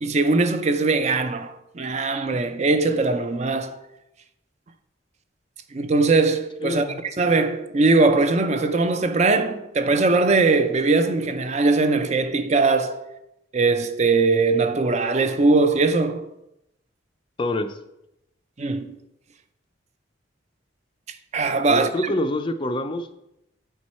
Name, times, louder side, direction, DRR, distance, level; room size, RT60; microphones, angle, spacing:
voice 1, 0.0-3.8 5.7-6.9 7.2-13.1 13.5-16.3 18.6-19.0 21.3-22.1, right 3 dB, 35° right, 0.5 m, -21 dB
voice 2, 6.6-7.0 17.4-17.8 21.7-23.1, left 1 dB, 25° left, 0.4 m, -26 dB
8.3 x 4.6 x 4.3 m
head